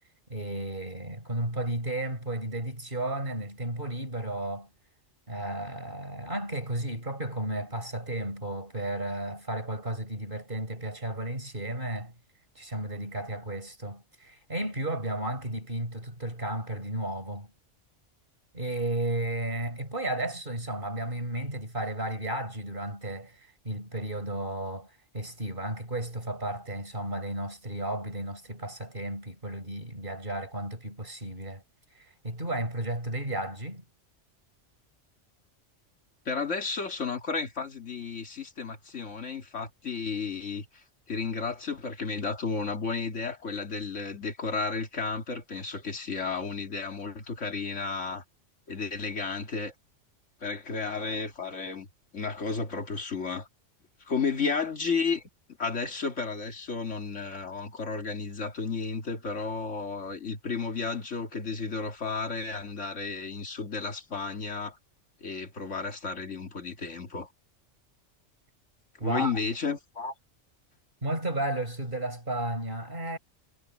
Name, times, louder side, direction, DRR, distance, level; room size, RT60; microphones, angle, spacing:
voice 1, 0.3-4.7 5.3-12.1 12.6-17.5 18.5-31.6 32.0-33.8 69.0-69.3 71.0-73.2, right 1 dB, 45° right, 5.6 m, -33 dB
voice 2, 36.3-48.2 48.7-49.7 50.4-51.9 52.1-53.5 54.0-55.2 55.6-64.8 65.2-67.3 69.0-70.1, left 4 dB, 80° left, 2.5 m, -33 dB
omnidirectional pair, 1.2 m